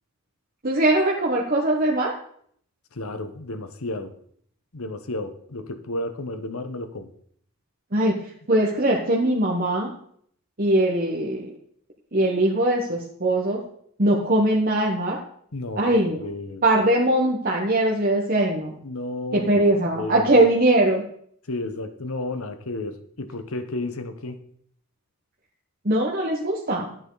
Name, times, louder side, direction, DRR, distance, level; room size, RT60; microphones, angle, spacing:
voice 1, 0.6-2.1 7.9-8.1 8.5-9.9 10.6-11.5 12.1-13.6 14.0-15.2 15.8-16.3 16.6-18.7 19.3-21.0 25.8-26.9, right 1 dB, 40° right, -2 dB, 1.3 m, -21 dB
voice 2, 2.9-4.1 4.7-7.1 15.5-15.9 16.2-16.6 18.8-19.6 19.9-20.4 21.5-24.4, left 2 dB, 70° left, 9 dB, 1.1 m, -32 dB
13.0 x 8.9 x 4.0 m, 0.63 s
head